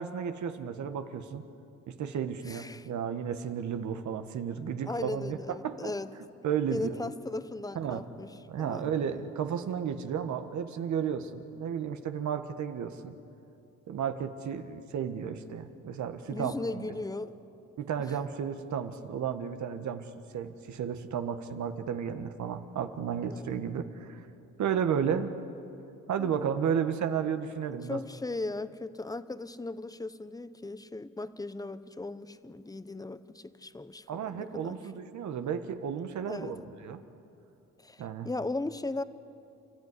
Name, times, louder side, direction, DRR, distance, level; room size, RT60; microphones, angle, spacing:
voice 1, 0.0-1.4 1.9-5.9 6.4-7.0 7.7-8.1 8.5-13.1 13.9-16.5 17.8-20.1 20.3-24.2 24.6-25.3 26.1-28.0 34.1-37.0 38.0-38.3, right 7 dB, 70° right, 8 dB, 1.6 m, -33 dB
voice 2, 2.5-2.9 4.9-6.1 6.7-8.3 8.6-8.9 16.3-17.3 18.1-18.2 23.3-23.6 26.2-26.5 27.9-34.8 36.3-36.5 37.8-39.0, left 2 dB, 10° left, 13 dB, 1.0 m, -37 dB
29.5 x 14.0 x 9.9 m, 2.8 s
cardioid pair, 90°, 30 cm